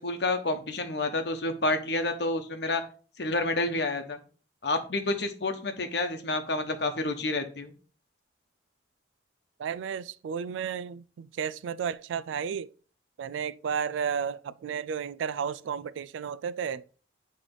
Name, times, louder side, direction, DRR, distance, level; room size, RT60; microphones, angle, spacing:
voice 1, 0.0-2.8 3.2-4.2 4.6-7.7, left 2 dB, 60° left, 1.0 m, -29 dB
voice 2, 9.6-12.7 13.2-16.8, right 7 dB, 80° right, 0.3 m, -33 dB
8.9 x 3.2 x 3.8 m
head